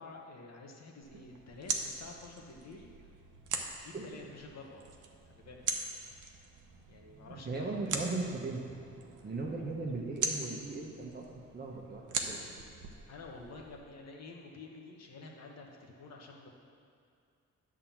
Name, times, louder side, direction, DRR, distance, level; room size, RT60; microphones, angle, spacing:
voice 1, 0.0-2.9 3.8-4.9 5.3-5.6 6.9-7.6 7.9-8.1 13.1-16.6, left 3 dB, 55° left, 0 dB, 1.1 m, -49 dB
sound 1, 1.0-13.8, right 4 dB, 80° right, 0.9 m, -41 dB
voice 2, 3.9-4.3 7.3-8.6 9.2-11.3 11.5-12.4, right 3 dB, 30° right, 0 dB, 1.0 m, -38 dB
10.5 x 3.7 x 7.2 m, 2.4 s
wide cardioid pair, 170°, 30 cm